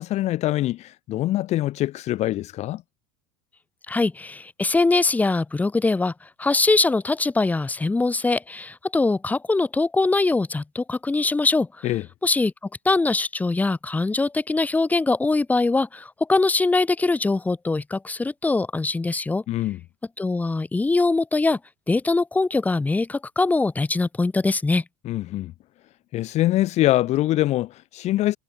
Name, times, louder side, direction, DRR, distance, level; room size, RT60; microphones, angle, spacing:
voice 1, 0.0-2.8 11.8-12.1 19.5-19.8 25.0-25.5 26.1-28.4, left 15 dB, 40° left, 2.9 m, -24 dB
voice 2, 3.9-6.1 6.4-11.9 12.2-12.5 12.8-19.4 20.2-21.6 21.9-24.8, left 3 dB, 10° left, 3.9 m, -22 dB
supercardioid pair, 155°, 18 cm